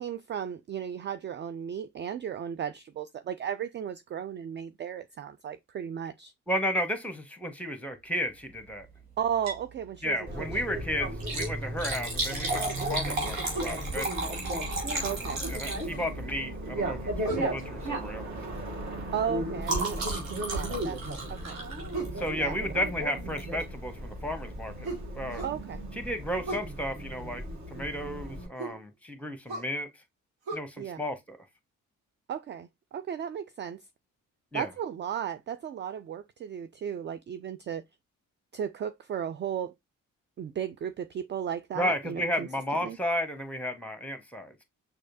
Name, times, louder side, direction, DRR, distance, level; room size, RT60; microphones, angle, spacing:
voice 1, 0.0-6.3 9.2-10.2 15.0-15.4 19.1-20.1 20.5-21.0 21.3-21.6 22.3-22.9 25.4-25.8 30.8-31.0 32.3-33.8 34.5-37.8 38.5-39.7 40.4-42.5 42.8-43.0, right 8 dB, 30° right, 0.4 m, -35 dB
voice 2, 6.5-8.9 10.0-14.4 15.5-18.3 22.2-24.9 25.1-25.4 25.9-29.9 30.5-31.4 34.5-34.7 41.7-44.6, equal, 5° left, 1.1 m, -33 dB
Liquid, 9.3-9.7 10.1-10.2 11.1-16.2 17.2-17.5 17.8-18.1 18.4-22.4 23.4-23.6 24.2-24.3 24.5-24.6, right 2 dB, 90° right, 1.1 m, -34 dB
Bicycle, 10.3-28.5, right 1 dB, 45° right, 1.8 m, -36 dB
sound 1, 13.5-13.8 15.4-16.1 17.2-17.6 19.7-19.9 21.9-22.2 24.8-25.6 26.4-26.7 28.6-28.8 29.5-29.7 30.4-30.6, right 3 dB, 65° right, 1.5 m, -36 dB
6.3 x 2.5 x 2.6 m
hypercardioid pair, 40°, 39 cm